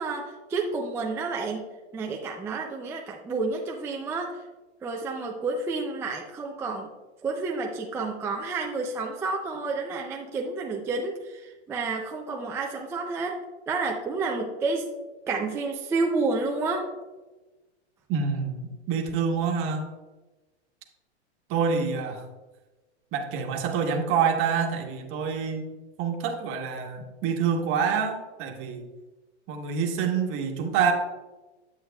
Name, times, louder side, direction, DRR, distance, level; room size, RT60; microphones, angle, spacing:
voice 1, 0.0-4.4 4.8-6.9 7.2-13.4 13.7-14.9 15.3-16.9, right 3 dB, 10° right, 0 dB, 0.4 m, -30 dB
voice 2, 18.1-19.9 21.5-22.2 23.1-25.7 26.0-28.8 29.5-30.9, right 6 dB, 40° right, 3 dB, 1.2 m, -27 dB
9.0 x 7.9 x 2.3 m, 1.2 s
hypercardioid pair, 120°, 34 cm